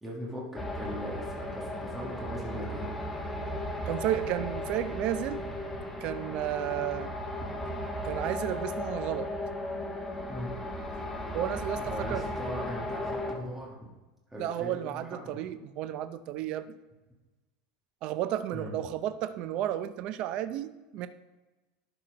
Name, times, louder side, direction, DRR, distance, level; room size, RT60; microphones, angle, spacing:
voice 1, 0.0-2.9 10.3-10.5 11.8-13.8 14.3-15.2 18.5-18.8, equal, 10° right, -5 dB, 1.9 m, -39 dB
sound 1, 0.6-13.3, left 1 dB, 10° left, 1.1 m, -36 dB
voice 2, 3.9-5.4 6.0-7.1 8.0-9.3 11.3-12.3 14.4-16.7 18.0-21.1, right 12 dB, 45° right, 12 dB, 0.5 m, -32 dB
11.5 x 4.4 x 5.1 m, 1.2 s
supercardioid pair, 150°, 2 cm